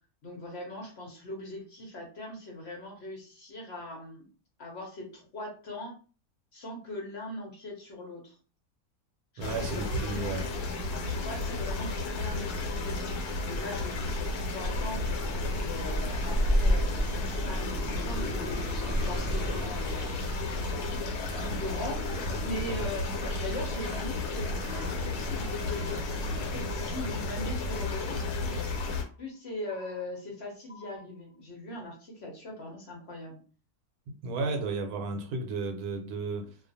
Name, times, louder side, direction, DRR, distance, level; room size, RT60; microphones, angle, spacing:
voice 1, 0.2-4.3 4.6-6.0 6.5-8.4 9.4-10.3 11.0-15.0 15.6-20.3 21.4-22.0 22.4-28.3 29.2-33.4, left 1 dB, 55° left, 0.8 m, -40 dB
sound 1, 9.4-29.0, left 2 dB, 85° left, 1.2 m, -31 dB
voice 2, 9.4-10.5 34.1-36.6, right 3 dB, 80° right, 1.1 m, -33 dB
sound 2, 11.7-12.4 12.7-13.4 13.7-14.4 14.7-15.4 15.7-16.4 16.7-17.4 17.7-18.4 18.7-19.4 19.7-20.4 20.7-21.4 21.7-22.4 22.7-23.4 23.7-24.4 24.7-25.4 25.7-26.4 26.7-27.4 27.7-28.4 28.7-29.4 29.7-30.4 30.7-31.4, left 4 dB, 10° right, 0.9 m, -52 dB
sound 3, 14.6-26.6, equal, 15° left, 1.0 m, -40 dB
2.4 x 2.4 x 2.6 m
omnidirectional pair, 1.6 m